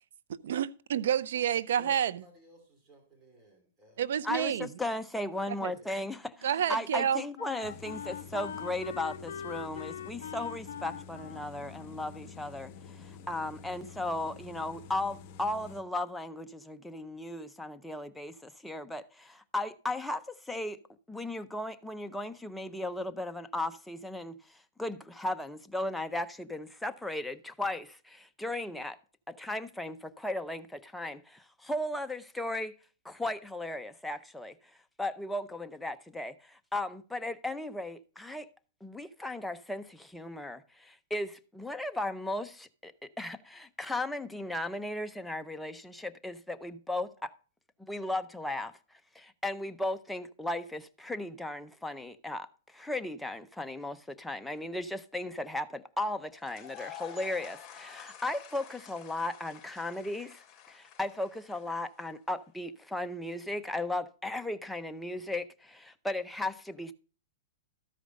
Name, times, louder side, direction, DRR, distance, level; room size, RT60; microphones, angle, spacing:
voice 1, 0.3-2.2 4.0-4.7 5.5-5.7 6.4-7.2, right 9 dB, 70° right, 0.5 m, -29 dB
voice 2, 1.8-4.6 5.6-5.9, left 1 dB, 20° right, 2.9 m, -56 dB
voice 3, 4.2-20.8 21.1-29.0 29.3-32.7 33.0-34.5 35.0-38.5 38.8-47.3 47.8-48.7 49.1-66.9, left 1 dB, 5° left, 0.6 m, -36 dB
Wind instrument woodwind instrument, 5.9-13.2, left 8 dB, 80° left, 0.5 m, -44 dB
sound 1, 7.6-15.8, left 6 dB, 40° left, 0.9 m, -49 dB
sound 2, 56.4-62.3, left 9 dB, 25° left, 3.1 m, -49 dB
13.0 x 5.0 x 5.2 m
hypercardioid pair, 135°, 0 cm